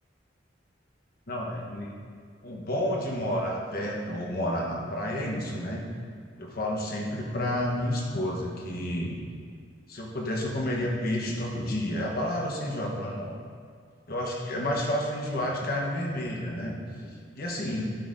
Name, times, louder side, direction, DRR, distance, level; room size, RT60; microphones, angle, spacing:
voice 1, 1.3-1.9 2.4-5.8 6.4-9.2 9.9-13.3 14.1-17.9, left 1 dB, 55° left, -1 dB, 1.1 m, -30 dB
12.0 x 6.2 x 2.6 m, 2.1 s
head